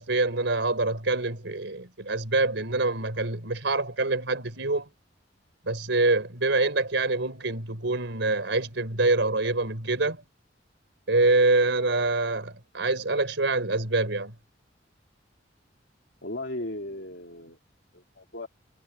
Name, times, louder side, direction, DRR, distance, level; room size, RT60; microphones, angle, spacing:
voice 1, 0.0-4.9 5.6-10.2 11.1-14.3, right 2 dB, 75° right, 4.2 m, -25 dB
voice 2, 16.2-17.6 17.9-18.5, left 1 dB, 70° left, 3.4 m, -36 dB
head